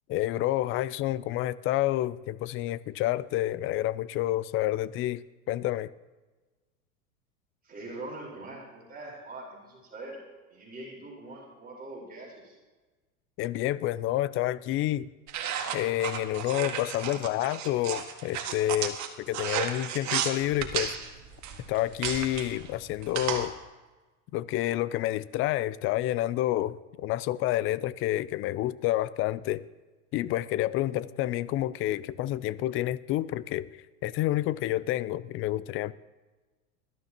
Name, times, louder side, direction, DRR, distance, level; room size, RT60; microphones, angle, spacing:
voice 1, 0.1-5.2 5.5-5.9 13.4-15.1 15.7-21.0 21.7-23.5 24.3-29.6 30.1-33.7 34.0-35.9, left 14 dB, 30° left, 18 dB, 0.4 m, -29 dB
voice 2, 7.6-10.2 10.5-12.6, right 2 dB, 20° right, -2 dB, 4.3 m, -43 dB
sound 1, 15.3-23.5, right 9 dB, 40° right, 1.8 m, -33 dB
20.5 x 12.5 x 2.9 m, 1.2 s
hypercardioid pair, 100°, 44 cm